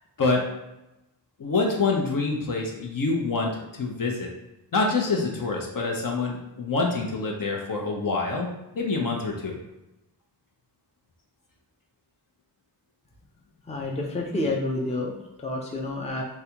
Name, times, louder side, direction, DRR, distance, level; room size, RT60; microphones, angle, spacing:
voice 1, 1.4-4.3 4.7-8.5 8.7-9.6, left 3 dB, 50° left, 0 dB, 0.7 m, -26 dB
voice 2, 13.7-16.2, left 2 dB, 15° left, 0 dB, 0.5 m, -29 dB
3.2 x 2.4 x 2.8 m, 0.93 s
cardioid pair, 50°, 43 cm